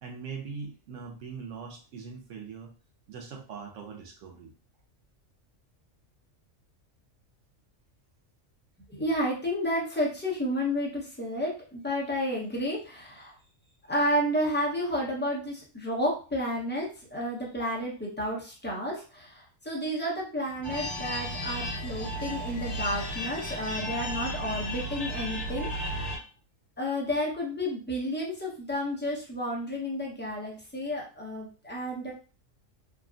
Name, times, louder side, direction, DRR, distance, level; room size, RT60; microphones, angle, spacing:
voice 1, 0.0-2.7 3.1-4.5, right 5 dB, 75° right, 2 dB, 1.1 m, -41 dB
voice 2, 8.9-13.4 13.9-26.1 26.8-32.1, equal, 10° left, -4 dB, 0.7 m, -31 dB
sound 1, 20.6-26.2, equal, 40° left, 1.4 m, -34 dB
3.5 x 2.2 x 2.5 m, 0.36 s
omnidirectional pair, 1.3 m